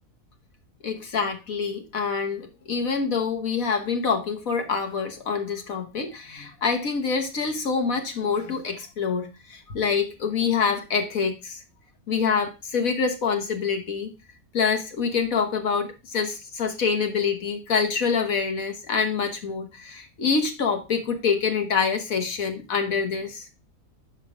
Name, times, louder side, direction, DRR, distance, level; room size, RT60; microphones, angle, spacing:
voice 1, 0.8-11.6 12.1-14.1 14.5-23.4, left 5 dB, 65° left, 5 dB, 1.5 m, -26 dB
6.4 x 5.0 x 4.9 m, 0.28 s
omnidirectional pair, 1.6 m